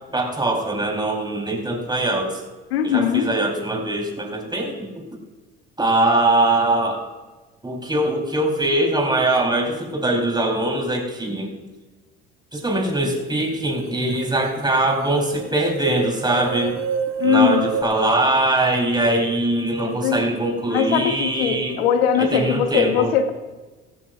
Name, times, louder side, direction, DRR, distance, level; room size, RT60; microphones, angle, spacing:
voice 1, 0.1-2.4 2.8-5.1 5.8-7.1 7.6-11.5 12.5-16.8 17.2-21.9 22.1-23.1, right 2 dB, 15° right, 2 dB, 4.2 m, -22 dB
voice 2, 2.7-3.3 17.2-17.6 19.8-20.2 20.7-23.3, left 8 dB, 85° left, 7 dB, 1.3 m, -20 dB
sound 1, 13.8-13.9 14.1-17.8, right 6 dB, 80° right, 1.2 m, -27 dB
16.5 x 15.0 x 2.6 m, 1.2 s
hypercardioid pair, 70°, 30 cm